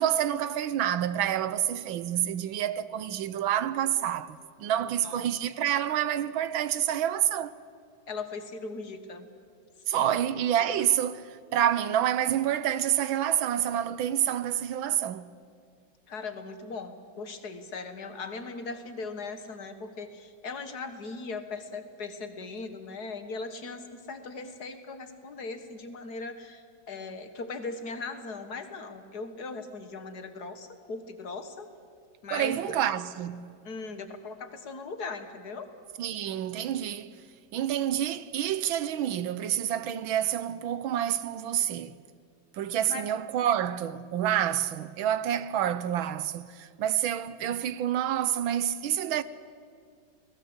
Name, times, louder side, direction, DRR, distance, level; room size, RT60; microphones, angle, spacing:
voice 1, 0.0-7.6 9.9-15.3 32.3-33.5 36.0-37.2 37.5-42.0 42.5-49.2, right 10 dB, 80° right, 1.6 m, -28 dB
voice 2, 4.8-5.3 8.1-9.3 10.0-10.2 16.1-31.7 32.2-32.8 33.6-35.7 42.9-43.1, left 3 dB, 55° left, 2.0 m, -39 dB
29.5 x 19.5 x 8.0 m
omnidirectional pair, 2.2 m